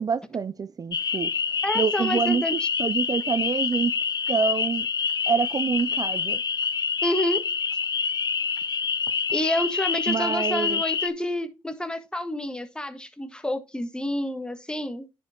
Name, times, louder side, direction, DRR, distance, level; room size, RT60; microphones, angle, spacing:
voice 1, 0.0-1.3 1.7-3.9 4.3-4.9 5.3-6.4 10.1-10.8, right 5 dB, 40° right, 0.4 m, -26 dB
sound 1, 0.9-11.1, left 6 dB, 50° left, 0.7 m, -27 dB
voice 2, 1.6-2.5 7.0-7.4 9.3-15.1, left 1 dB, 10° left, 1.6 m, -29 dB
10.5 x 5.1 x 3.7 m
supercardioid pair, 55°, 9 cm